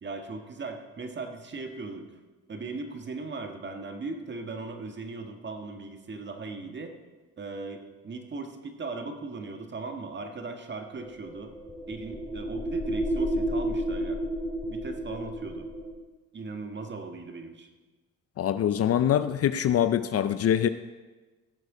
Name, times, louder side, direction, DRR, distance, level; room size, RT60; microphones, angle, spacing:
voice 1, 0.0-2.1 2.5-7.0 7.4-11.5 11.9-14.2 14.7-15.7 16.3-17.7, right 3 dB, 35° right, 5 dB, 1.5 m, -38 dB
sound 1, 11.0-16.0, right 1 dB, 20° left, 2.8 m, -31 dB
voice 2, 18.4-20.7, left 10 dB, 50° left, 12 dB, 0.5 m, -24 dB
17.0 x 6.6 x 4.9 m, 1.3 s
cardioid pair, 90°, 30 cm